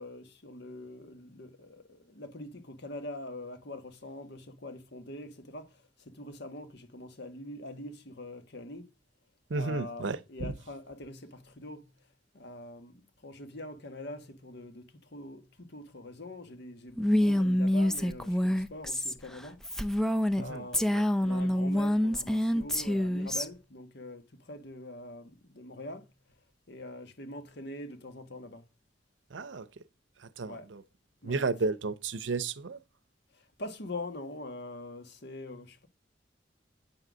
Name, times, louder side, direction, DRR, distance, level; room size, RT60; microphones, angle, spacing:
voice 1, 0.0-8.9 9.5-11.9 12.3-19.6 20.3-20.9 21.2-26.1 26.7-28.7 30.5-30.7 31.2-31.7 33.3-35.9, left 1 dB, 65° left, 1.5 m, -44 dB
voice 2, 9.5-10.5 20.4-20.7 20.9-21.0 29.3-29.7 30.4-30.8 31.2-32.8, right 3 dB, 85° right, 0.7 m, -33 dB
Female speech woman speaking, 17.0-20.4 20.7-23.5, left 1 dB, 5° left, 0.5 m, -27 dB
8.7 x 3.9 x 6.2 m
head